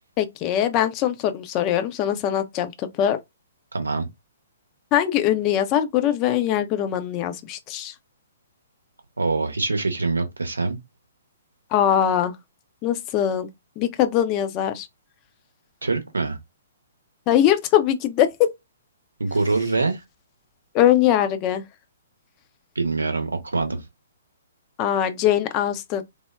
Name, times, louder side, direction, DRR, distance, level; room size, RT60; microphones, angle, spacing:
voice 1, 0.2-3.2 4.9-7.9 11.7-12.4 12.8-13.5 13.8-14.9 17.3-18.5 20.7-21.6 24.8-26.0, left 11 dB, 30° left, 0.5 m, -21 dB
voice 2, 3.7-4.1 9.2-10.8 15.8-16.4 19.2-20.0 22.8-23.8, right 3 dB, 75° right, 0.7 m, -24 dB
3.3 x 2.1 x 2.2 m
figure-of-eight pair, 120°, 0 cm